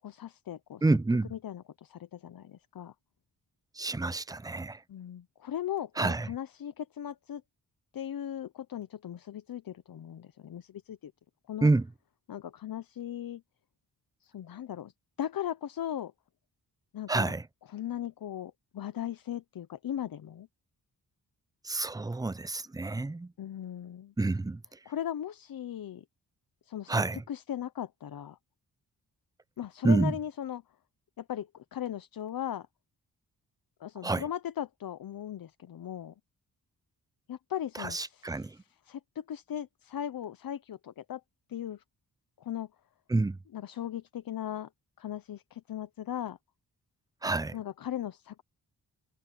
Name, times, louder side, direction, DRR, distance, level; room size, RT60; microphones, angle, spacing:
voice 1, 0.0-0.9 1.3-2.9 4.9-7.4 7.9-11.1 11.5-11.7 12.3-13.4 14.2-14.9 15.2-16.1 16.9-17.3 17.7-20.5 23.4-24.1 24.9-26.0 26.6-27.0 27.3-28.4 29.6-30.6 31.2-32.7 33.8-36.1 37.3-41.2 41.5-41.8 42.4-42.7 43.5-44.7 45.0-46.4 47.5-48.4, left 10 dB, 65° left, 0.8 m, -38 dB
voice 2, 0.8-1.3 3.8-4.8 6.0-6.3 11.6-11.9 17.1-17.4 21.6-23.3 24.2-24.6 26.9-27.2 29.8-30.2 34.0-34.2 37.8-38.6 43.1-43.4 47.2-47.5, right 2 dB, 10° right, 0.4 m, -28 dB
cardioid pair, 95°, 39 cm